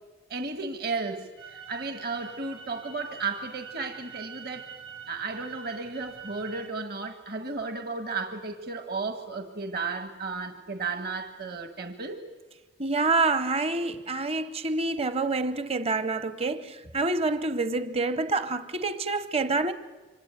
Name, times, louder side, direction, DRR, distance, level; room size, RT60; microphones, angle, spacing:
voice 1, 0.3-4.7 5.1-12.2, right 4 dB, 55° right, 1.6 m, -34 dB
sound 1, 1.4-6.7, right 7 dB, 80° right, 5.1 m, -45 dB
voice 2, 12.8-19.7, right 3 dB, 30° right, 0.8 m, -27 dB
26.0 x 25.0 x 9.1 m
head